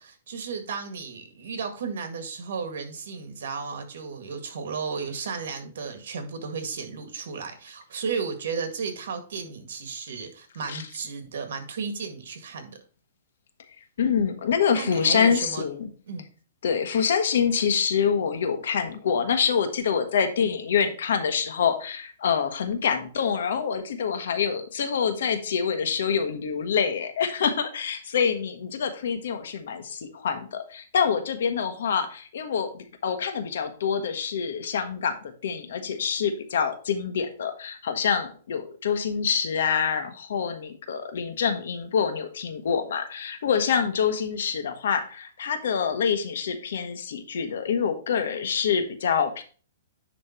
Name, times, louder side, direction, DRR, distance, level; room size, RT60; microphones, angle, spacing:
voice 1, 0.0-12.8 14.7-15.7 16.1-16.3, right 5 dB, 70° right, 7 dB, 1.9 m, -34 dB
voice 2, 14.0-15.9 16.6-49.4, left 7 dB, 70° left, 7 dB, 1.3 m, -26 dB
10.0 x 3.4 x 4.4 m, 0.40 s
hypercardioid pair, 155°, 0 cm